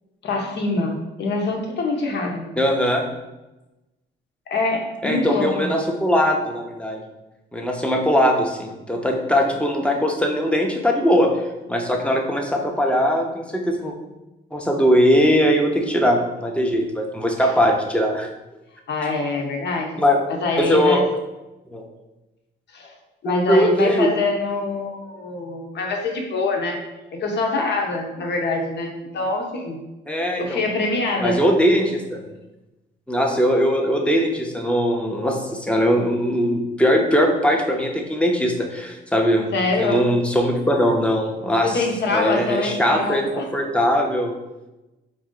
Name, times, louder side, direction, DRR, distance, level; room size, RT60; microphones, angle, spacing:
voice 1, 0.2-2.5 4.5-5.7 17.4-17.6 18.9-20.0 20.3-21.0 22.7-23.0 23.2-29.8 30.4-31.4 39.5-40.1 41.6-43.5, left 3 dB, 60° left, 1 dB, 0.9 m, -24 dB
voice 2, 2.6-3.0 5.0-7.0 7.5-11.3 11.7-13.9 14.5-18.3 20.0-20.2 20.6-21.0 21.7-21.8 23.2-24.1 30.1-30.6 31.2-32.2 33.1-39.5 39.8-41.8 42.1-44.3, equal, 5° left, 1 dB, 0.7 m, -20 dB
4.2 x 2.6 x 3.7 m, 1.0 s
cardioid pair, 90°, 20 cm